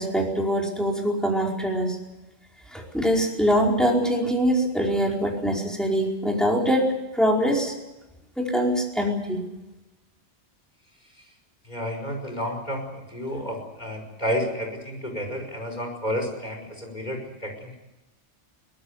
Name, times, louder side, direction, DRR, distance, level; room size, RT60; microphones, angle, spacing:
voice 1, 0.0-2.0 2.7-7.7 8.4-9.4, equal, ahead, -1 dB, 4.8 m, -23 dB
voice 2, 11.6-17.8, equal, 40° left, 3 dB, 5.6 m, -31 dB
23.5 x 18.5 x 8.2 m, 1.0 s
omnidirectional pair, 1.2 m